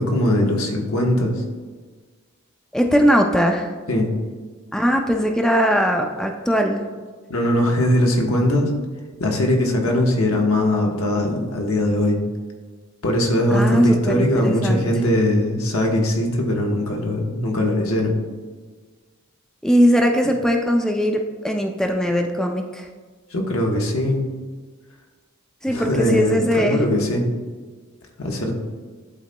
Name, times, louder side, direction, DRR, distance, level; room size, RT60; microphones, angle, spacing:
voice 1, 0.0-1.4 3.9-4.1 7.3-8.7 9.2-12.2 13.0-18.1 23.3-24.2 25.7-27.2 28.2-28.5, left 1 dB, 80° left, 1 dB, 1.1 m, -20 dB
voice 2, 2.7-3.7 4.7-6.8 13.5-14.8 19.6-22.9 25.6-26.8, equal, 5° left, 3 dB, 0.3 m, -20 dB
11.0 x 3.9 x 2.2 m, 1.4 s
head